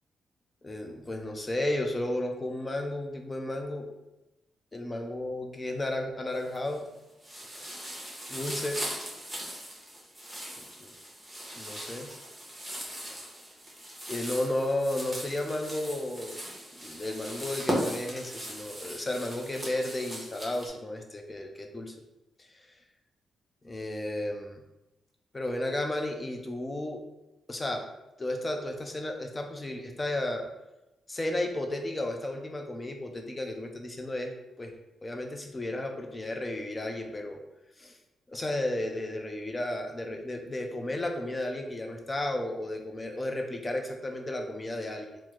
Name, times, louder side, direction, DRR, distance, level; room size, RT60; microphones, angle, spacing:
voice 1, 0.6-3.9 4.7-6.8 7.5-7.7 8.3-8.8 10.6-10.9 11.5-12.1 13.1-13.2 14.1-16.5 16.7-21.9 22.4-22.7 23.6-24.6 25.3-27.0 27.5-27.8 28.2-30.5 31.1-34.3 34.6-34.7 35.0-37.4 37.8-38.0 38.3-45.2, left 1 dB, 20° left, 4 dB, 0.4 m, -33 dB
sound 1, 6.3-6.9 7.2-20.7, equal, 10° right, 0.9 m, -38 dB
3.5 x 2.1 x 3.0 m, 0.96 s
cardioid pair, 110°, 0 cm